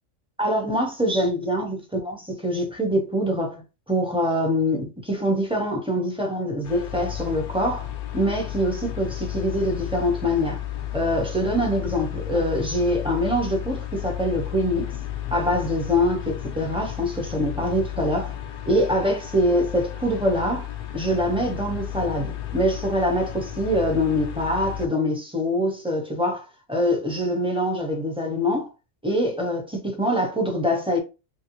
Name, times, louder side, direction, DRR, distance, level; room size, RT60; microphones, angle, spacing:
voice 1, 0.4-7.9 8.1-10.6 10.9-14.9 15.3-18.3 18.7-20.7 20.9-28.7 29.0-31.0, equal, 5° right, 0.8 m, -24 dB
sound 1, 6.6-24.9, left 12 dB, 60° left, 0.6 m, -33 dB
3.2 x 2.7 x 3.0 m
omnidirectional pair, 1.3 m